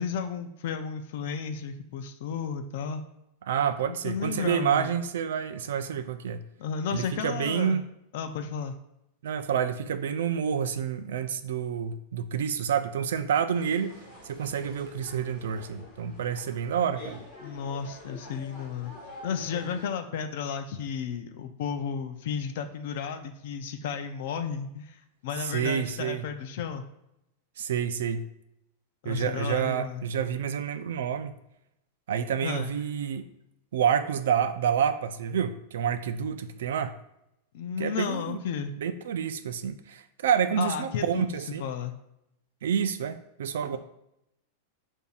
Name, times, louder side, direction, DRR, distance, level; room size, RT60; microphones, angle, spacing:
voice 1, 0.0-3.0 3.9-5.0 6.6-7.8 8.1-8.8 17.4-18.9 19.2-26.8 29.0-30.0 32.4-32.7 37.5-38.7 40.6-41.3 41.6-41.9 43.7-43.8, left 7 dB, 50° left, 7 dB, 0.4 m, -33 dB
voice 2, 3.5-6.4 6.9-7.9 9.2-14.0 14.2-17.2 25.5-26.3 27.6-28.3 29.0-31.3 32.1-33.3 33.7-36.9 37.8-38.4 38.8-41.7 42.6-43.8, right 8 dB, 85° right, 11 dB, 0.3 m, -28 dB
sound 1, 13.5-19.9, left 2 dB, 15° left, 1.4 m, -47 dB
6.9 x 2.6 x 2.4 m, 0.84 s
supercardioid pair, 180°, 0 cm